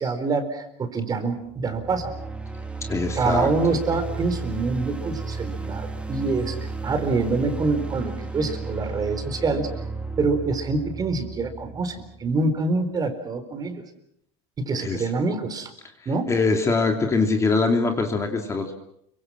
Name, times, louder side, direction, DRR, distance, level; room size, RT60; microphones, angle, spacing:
voice 1, 0.0-2.1 3.1-9.7 10.2-13.8 14.6-15.7 16.1-16.3, right 3 dB, 25° right, 8 dB, 4.2 m, -26 dB
sound 1, 1.5-12.5, right 3 dB, 5° right, 2.4 m, -33 dB
voice 2, 2.9-3.8 14.7-15.1 16.3-18.7, left 3 dB, 20° left, 4 dB, 2.9 m, -23 dB
29.5 x 24.5 x 6.3 m, 0.75 s
supercardioid pair, 140°, 16 cm